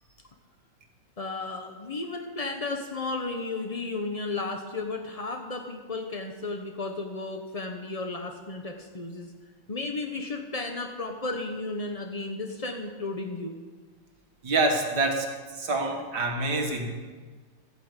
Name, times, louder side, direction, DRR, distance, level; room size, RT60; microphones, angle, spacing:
voice 1, 1.2-9.3 9.7-13.6, left 3 dB, 65° left, 4 dB, 0.3 m, -34 dB
voice 2, 14.4-16.9, right 2 dB, 55° right, 2 dB, 2.2 m, -27 dB
14.0 x 9.0 x 8.1 m, 1.5 s
omnidirectional pair, 2.3 m